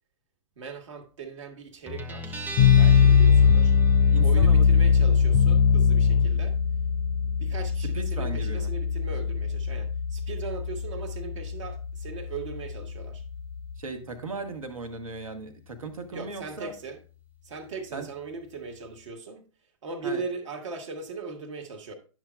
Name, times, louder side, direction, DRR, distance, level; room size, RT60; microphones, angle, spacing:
voice 1, 0.6-2.5 2.8-3.7 4.2-6.6 7.2-13.2 16.1-17.0 17.4-19.4 19.8-21.9, right 4 dB, 60° right, 1.3 m, -38 dB
Guitar, 1.9-19.1, left 3 dB, 10° right, 0.7 m, -43 dB
sound 1, 2.6-13.7, left 6 dB, 40° left, 0.6 m, -21 dB
voice 2, 4.1-4.7 7.8-8.7 13.8-16.7 17.9-18.1 20.0-20.2, right 3 dB, 75° right, 1.2 m, -37 dB
10.0 x 6.2 x 2.2 m
figure-of-eight pair, 105°, 18 cm